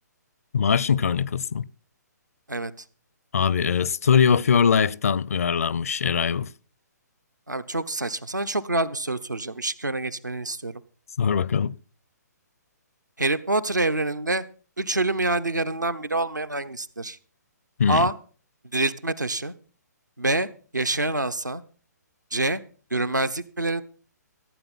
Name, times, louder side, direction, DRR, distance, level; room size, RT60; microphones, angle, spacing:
voice 1, 0.5-1.6 3.3-6.5 11.2-11.7 17.8-18.1, left 7 dB, 55° left, 0.6 m, -22 dB
voice 2, 7.5-10.7 13.2-14.4 14.8-17.2 17.9-18.1 18.7-19.5 20.2-20.5 20.7-21.6 22.3-22.6 22.9-23.8, right 2 dB, 80° right, 1.1 m, -26 dB
15.5 x 9.1 x 5.6 m
figure-of-eight pair, 130°, 10 cm